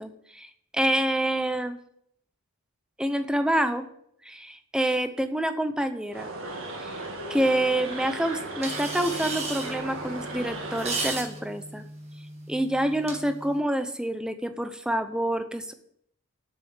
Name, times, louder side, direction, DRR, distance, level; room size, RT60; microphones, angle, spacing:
voice 1, 0.0-1.8 3.0-3.9 4.2-6.3 6.8-6.9 7.3-11.9 12.5-15.7, right 1 dB, 5° right, 8 dB, 0.7 m, -27 dB
sound 1, 6.1-11.2, right 2 dB, 60° right, 1.9 m, -36 dB
sound 2, 8.6-13.6, right 3 dB, 30° right, 1.7 m, -36 dB
7.7 x 7.0 x 8.0 m, 0.70 s
head